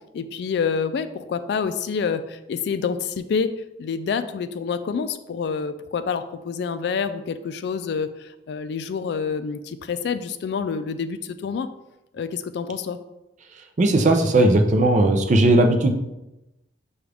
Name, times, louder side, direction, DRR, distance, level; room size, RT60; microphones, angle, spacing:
voice 1, 0.1-11.7 12.1-13.0, left 6 dB, 65° left, 10 dB, 0.3 m, -27 dB
voice 2, 13.8-15.9, right 2 dB, 45° right, 5 dB, 0.5 m, -17 dB
6.2 x 2.3 x 3.3 m, 0.95 s
head